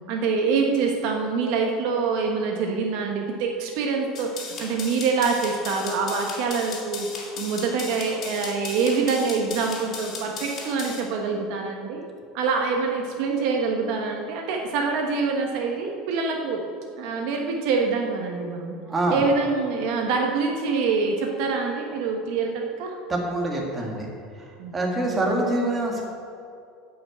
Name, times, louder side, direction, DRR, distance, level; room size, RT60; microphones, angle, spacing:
voice 1, 0.1-4.3 4.6-7.1 7.4-12.0 12.3-16.6 17.0-18.8 19.1-22.9 24.6-24.7, right 4 dB, 65° right, 2 dB, 1.3 m, -25 dB
sound 1, 4.1-11.0, left 4 dB, 40° left, 2.7 m, -36 dB
voice 2, 18.9-19.2 23.1-24.1 24.7-26.0, right 1 dB, 20° right, -1 dB, 2.0 m, -25 dB
9.3 x 5.9 x 8.0 m, 2.4 s
supercardioid pair, 130°, 0 cm